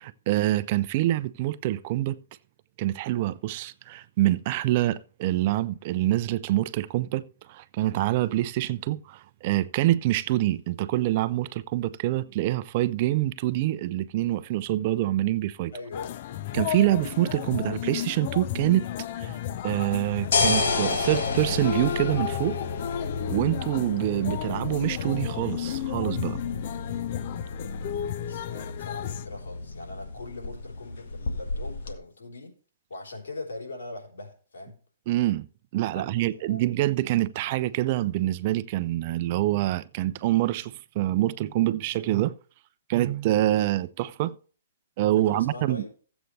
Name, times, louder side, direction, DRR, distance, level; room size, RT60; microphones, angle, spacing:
voice 1, 0.0-2.2 2.8-15.7 16.5-18.9 19.2-19.4 19.6-22.6 23.3-26.4 35.1-35.5 35.7-42.4 42.9-44.3 45.0-45.8, right 15 dB, 40° right, 0.5 m, -26 dB
voice 2, 15.7-16.1 28.2-32.5 32.9-34.8 35.9-36.6 45.1-45.9, left 2 dB, 80° left, 3.7 m, -41 dB
sound 1, 15.9-29.3, left 11 dB, 45° left, 0.5 m, -33 dB
sound 2, 19.8-31.9, left 3 dB, 65° left, 1.7 m, -32 dB
15.0 x 8.1 x 3.2 m
hypercardioid pair, 145°, 0 cm